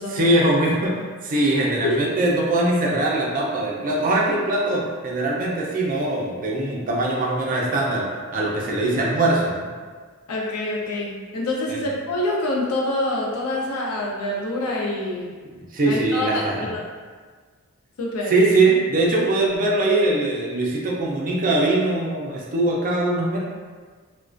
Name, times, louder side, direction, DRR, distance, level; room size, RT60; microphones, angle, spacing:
voice 1, 0.1-9.7 11.7-11.8 15.7-16.7 18.3-23.4, right 2 dB, 40° right, -3 dB, 0.4 m, -22 dB
voice 2, 10.3-15.3 15.8-16.5 16.7-16.8 18.0-18.3, left 1 dB, 80° left, -3 dB, 0.5 m, -26 dB
2.3 x 2.1 x 2.4 m, 1.5 s
head